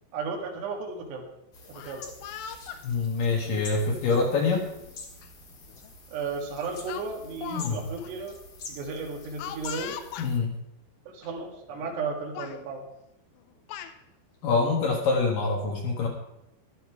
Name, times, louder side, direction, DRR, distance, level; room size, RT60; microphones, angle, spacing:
voice 1, 0.1-1.3 1.7-2.0 6.1-8.4 8.7-10.0 11.1-12.9, right 4 dB, 75° right, -1 dB, 4.1 m, -34 dB
sound 1, 1.5-10.4, left 3 dB, 45° left, 2.0 m, -46 dB
Speech, 1.6-2.8 3.7-4.0 5.2-5.3 5.7-5.9 6.9-7.7 8.0-8.1 9.4-10.3 11.2-11.3 11.7-12.0 12.3-12.6 13.4-13.9, left 10 dB, 85° left, 3.0 m, -40 dB
voice 2, 2.8-4.7 7.5-7.8 10.2-10.5 14.4-16.1, left 4 dB, 60° left, 1 dB, 2.8 m, -25 dB
13.5 x 11.5 x 4.8 m, 0.82 s
omnidirectional pair, 5.1 m